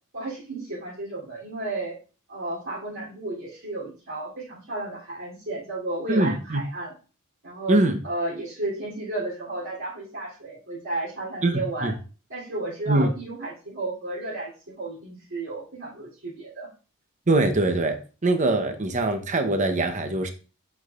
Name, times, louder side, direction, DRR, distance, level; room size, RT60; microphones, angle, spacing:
voice 1, 0.1-2.0 2.3-6.9 7.4-11.9 12.3-14.5 14.8-16.7, right 2 dB, 65° right, -8 dB, 3.2 m, -33 dB
voice 2, 6.1-6.6 7.7-8.0 11.4-11.9 12.9-13.1 17.3-20.3, right 2 dB, 35° right, 7 dB, 0.9 m, -23 dB
7.9 x 6.2 x 2.5 m, 0.36 s
head